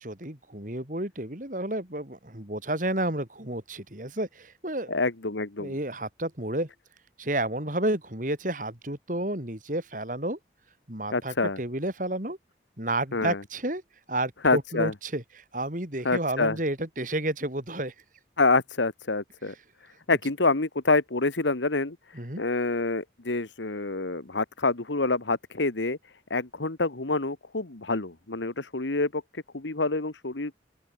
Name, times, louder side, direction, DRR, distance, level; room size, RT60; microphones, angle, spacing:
voice 1, 0.0-5.0 5.6-6.7 7.2-10.4 10.9-12.4 12.8-13.8 14.1-17.9 22.1-22.4, right 1 dB, 45° right, 3.6 m, -31 dB
voice 2, 4.9-5.7 11.1-11.6 13.1-13.4 14.4-14.9 16.0-16.6 18.4-19.5 20.1-22.0 22.4-26.0 26.3-29.2 29.5-30.5, left 3 dB, 90° left, 1.6 m, -27 dB
open air
head